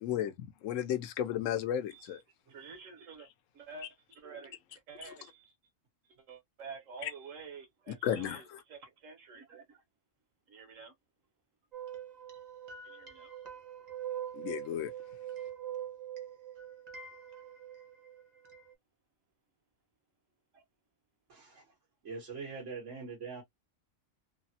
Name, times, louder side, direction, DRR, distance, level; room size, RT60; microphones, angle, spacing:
voice 1, 0.0-2.2 7.0-7.1 8.0-8.4 14.3-14.9, left 10 dB, 90° left, 1.0 m, -33 dB
voice 2, 1.9-2.2 2.5-3.3 3.5-5.5 6.0-9.8 10.5-10.9 12.8-13.3 20.5-20.6, right 5 dB, 90° right, 1.4 m, -49 dB
sound 1, 11.7-18.7, right 10 dB, 40° right, 0.8 m, -43 dB
voice 3, 21.3-21.7 22.0-23.4, right 4 dB, 70° right, 1.5 m, -43 dB
3.3 x 2.0 x 2.6 m
omnidirectional pair, 1.3 m